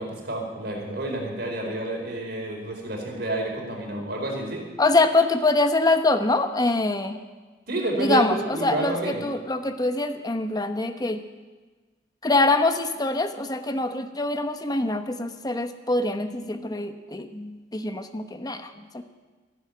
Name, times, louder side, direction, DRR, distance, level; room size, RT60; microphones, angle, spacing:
voice 1, 0.0-4.6 7.7-9.2, right 1 dB, 60° right, 0 dB, 4.6 m, -29 dB
voice 2, 4.8-7.2 8.0-11.2 12.2-19.0, left 2 dB, 20° left, 8 dB, 0.9 m, -24 dB
14.5 x 11.5 x 8.5 m, 1.3 s
head